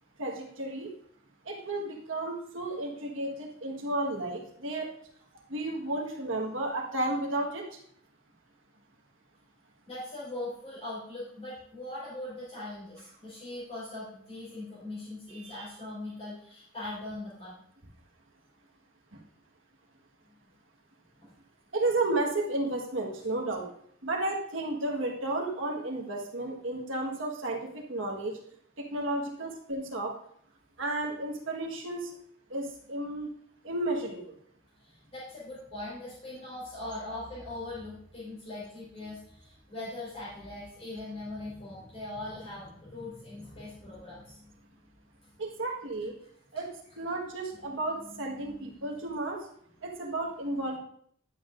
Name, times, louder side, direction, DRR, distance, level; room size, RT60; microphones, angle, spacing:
voice 1, 0.2-0.9 1.4-4.9 5.5-7.8 15.3-15.7 19.1-19.2 21.7-23.7 24.0-28.3 28.8-30.2 30.8-32.1 32.5-33.3 33.6-34.3 45.4-46.1 46.5-49.4 49.8-50.8, right 2 dB, 65° right, 0 dB, 1.5 m, -33 dB
voice 2, 9.9-17.7 21.2-21.3 33.6-33.7 34.8-44.7 45.2-45.3 47.6-49.0 50.5-50.6, left 2 dB, 30° left, -9 dB, 4.0 m, -41 dB
11.0 x 7.6 x 2.6 m, 0.65 s
head